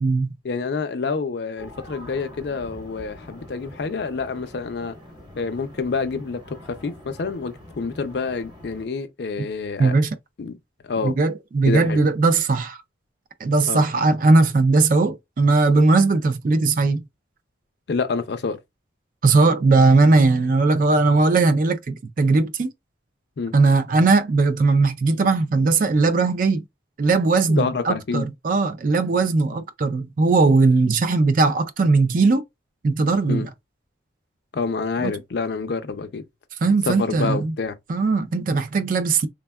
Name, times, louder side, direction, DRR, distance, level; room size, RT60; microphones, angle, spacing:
voice 1, 0.4-5.0 5.4-10.0 10.4-10.6 10.8-11.1 11.7-12.0 13.7-13.8 17.9-18.6 23.4-23.5 27.5-28.3 33.3-33.5 34.5-36.2 36.9-37.8, left 4 dB, 60° left, 0.4 m, -27 dB
sound 1, 1.6-8.9, left 1 dB, 25° right, 0.9 m, -44 dB
voice 2, 9.8-10.2 11.0-12.8 13.4-17.0 19.2-22.7 23.5-26.6 27.0-32.4 32.8-33.5 35.0-35.2 36.6-37.5 37.9-39.3, right 3 dB, 45° right, 0.3 m, -19 dB
3.4 x 2.2 x 2.2 m
head